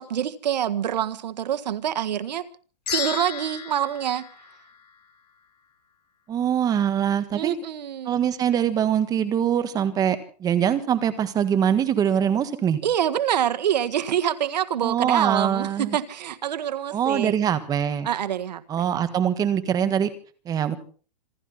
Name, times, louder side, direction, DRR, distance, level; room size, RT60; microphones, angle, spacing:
voice 1, 0.0-2.5 2.9-4.3 7.3-8.2 12.8-17.3 18.0-18.9, right 10 dB, 80° right, 1.6 m, -26 dB
sound 1, 2.9-5.3, left 8 dB, 70° left, 5.7 m, -33 dB
voice 2, 6.3-7.5 8.0-12.8 14.8-16.0 16.9-18.1 18.7-20.1 20.4-20.8, right 9 dB, 15° right, 1.7 m, -23 dB
27.0 x 12.0 x 4.3 m
hypercardioid pair, 155°, 21 cm